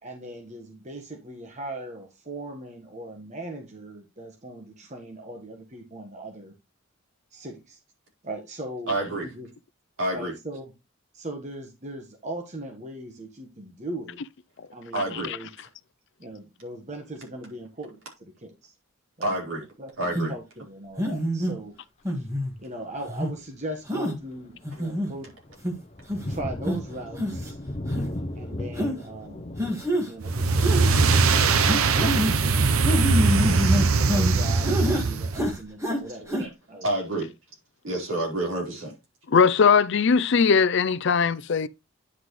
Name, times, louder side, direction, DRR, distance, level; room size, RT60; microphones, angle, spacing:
voice 1, 0.0-6.5 7.3-7.8 8.2-9.5 10.1-10.7 11.1-14.2 14.7-15.5 16.2-18.7 19.2-19.4 19.8-21.7 22.1-22.3 22.6-25.3 26.3-27.6 28.4-29.5 30.1-32.7 33.4-36.2 36.7-36.9, right 1 dB, 35° right, 1.4 m, -39 dB
voice 2, 8.9-9.3 10.0-10.3 14.9-15.3 19.2-19.6 20.0-20.3 36.3-36.5 36.8-37.3 37.8-38.9, right 1 dB, 65° right, 4.2 m, -28 dB
voice 3, 15.0-15.4 39.3-41.7, left 5 dB, 55° left, 0.5 m, -20 dB
sound 1, 20.1-20.3 21.0-21.5 22.1-22.5 23.1-23.3 23.9-24.2 24.6-25.1 25.6-25.7 26.1-26.3 26.7-26.8 27.2-27.5 27.9-28.0 28.8-29.0 29.6-30.1 30.6-31.0 31.6-32.4 32.8-34.3 34.6-35.1 35.3-36.0 36.3-36.4, equal, 15° right, 1.8 m, -26 dB
Thunder, 22.4-22.7 23.3-23.4 23.9-34.4, left 1 dB, 30° left, 0.8 m, -38 dB
sound 2, 30.2-35.5, right 4 dB, 85° right, 0.7 m, -21 dB
9.8 x 6.0 x 3.2 m
head